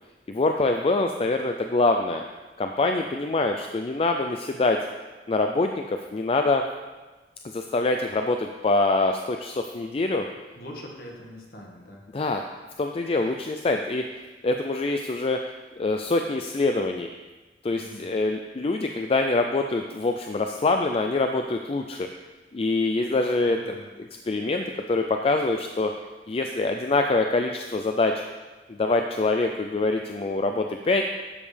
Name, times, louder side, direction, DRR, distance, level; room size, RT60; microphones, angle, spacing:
voice 1, 0.3-2.2 2.6-4.8 5.3-6.6 7.5-10.3 12.1-12.4 12.8-14.0 14.4-15.4 15.8-17.1 17.6-22.1 22.5-23.8 24.3-25.9 26.3-28.2 28.7-31.0, left 2 dB, 35° left, 4 dB, 0.4 m, -25 dB
voice 2, 10.6-12.0 17.7-18.1 23.5-23.8, equal, 55° left, -1 dB, 1.8 m, -42 dB
12.0 x 7.4 x 3.4 m, 1.3 s
head